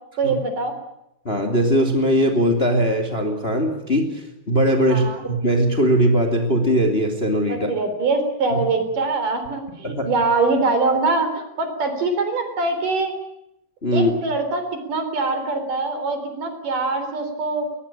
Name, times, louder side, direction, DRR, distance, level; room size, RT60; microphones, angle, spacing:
voice 1, 0.2-0.7 4.9-5.3 7.5-13.1 13.9-14.6 14.9-17.7, right 3 dB, 60° right, 8 dB, 5.2 m, -23 dB
voice 2, 1.2-7.7 8.5-8.6 9.8-10.1 13.8-14.1, equal, 15° left, 4 dB, 2.7 m, -20 dB
21.5 x 21.0 x 8.6 m, 0.85 s
omnidirectional pair, 4.4 m